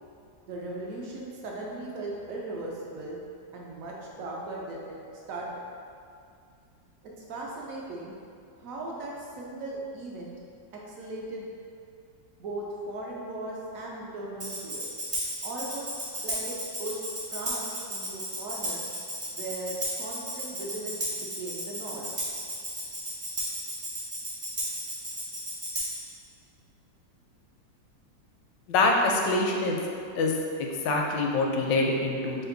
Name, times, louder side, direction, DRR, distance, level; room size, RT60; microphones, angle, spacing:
voice 1, 0.5-3.2 3.5-5.0 5.3-5.7 7.0-8.2 8.6-10.3 10.7-11.5 12.4-14.9 15.4-18.8 19.3-22.2, right 2 dB, 70° right, -3 dB, 0.8 m, -38 dB
Tambourine, 14.4-26.1, right 1 dB, 35° right, 0.6 m, -34 dB
voice 2, 28.7-29.8 30.1-32.5, left 2 dB, 80° left, 0 dB, 1.2 m, -25 dB
4.3 x 2.5 x 3.8 m, 2.4 s
omnidirectional pair, 2.0 m